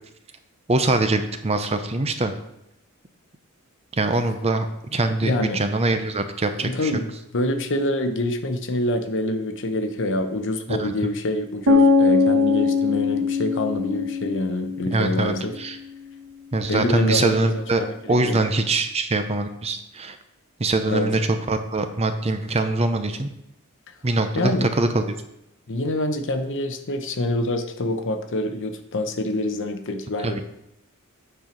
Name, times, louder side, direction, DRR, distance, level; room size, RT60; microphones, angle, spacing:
voice 1, 0.7-2.3 3.9-4.7 4.9-6.9 10.7-11.1 14.9-15.8 16.5-17.8 18.1-20.2 20.6-23.3 24.0-25.0 30.2-30.4, right 2 dB, 30° right, 8 dB, 0.6 m, -23 dB
voice 2, 5.2-5.6 6.6-15.5 16.7-18.4 20.8-21.1 24.3-24.7 25.7-30.4, left 1 dB, 60° left, 7 dB, 0.8 m, -26 dB
sound 1, 11.7-15.6, left 4 dB, 70° right, 1.2 m, -21 dB
8.8 x 4.5 x 5.1 m, 0.82 s
head